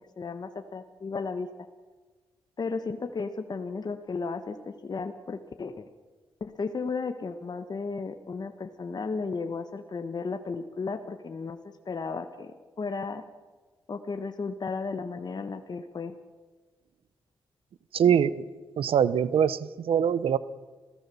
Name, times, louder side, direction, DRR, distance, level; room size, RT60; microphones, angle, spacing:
voice 1, 0.0-1.5 2.6-5.9 6.4-11.6 11.8-13.2 13.9-16.1, left 4 dB, 45° left, 8 dB, 1.4 m, -34 dB
voice 2, 17.9-18.4 18.8-20.4, right 8 dB, 80° right, 17 dB, 0.9 m, -23 dB
27.0 x 17.0 x 7.0 m, 1.3 s
cardioid pair, 65°, 9 cm